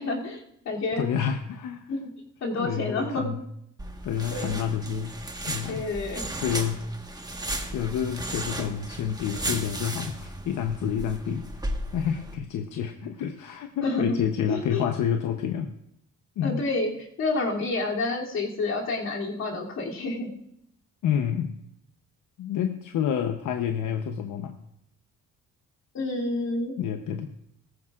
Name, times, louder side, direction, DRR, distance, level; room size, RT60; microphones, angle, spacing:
voice 1, 0.0-1.1 1.9-2.1 2.4-3.3 4.3-4.6 5.7-6.2 13.8-14.2 14.5-14.8 16.4-16.9 17.2-20.3 25.9-26.7, left 2 dB, 60° left, -2 dB, 2.9 m, -29 dB
voice 2, 1.0-1.9 2.6-3.4 4.0-5.2 5.5-5.8 6.4-6.8 7.6-11.5 11.9-15.7 16.4-16.6 21.0-21.5 22.4-24.5 26.8-27.3, left 8 dB, 80° left, 6 dB, 0.9 m, -29 dB
sound 1, 3.8-12.3, right 1 dB, 15° right, 1.4 m, -35 dB
18.0 x 14.5 x 2.5 m, 0.76 s
cardioid pair, 90°, 30 cm